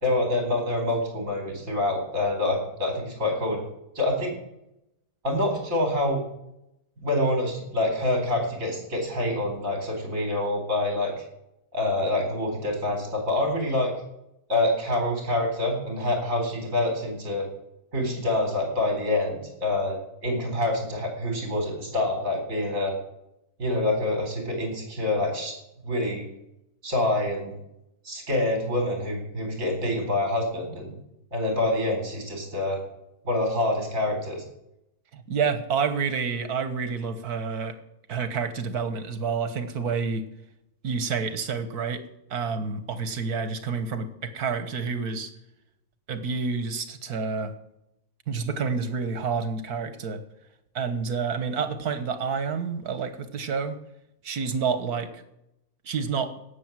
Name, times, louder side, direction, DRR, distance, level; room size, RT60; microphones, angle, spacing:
voice 1, 0.0-3.6 3.9-4.3 5.2-6.2 7.0-11.2 11.7-13.9 14.5-17.5 17.9-22.9 23.6-25.5 25.8-26.2 26.8-27.5 28.0-30.9 31.3-32.8 33.2-34.4, left 2 dB, 60° right, 2 dB, 4.6 m, -26 dB
voice 2, 35.1-37.8 38.1-40.3 40.8-42.0 42.3-45.3 46.1-47.5 48.3-50.2 50.8-53.8 54.2-55.2 55.8-56.3, right 5 dB, 85° right, 10 dB, 1.8 m, -29 dB
17.0 x 6.9 x 7.6 m, 0.85 s
omnidirectional pair, 1.6 m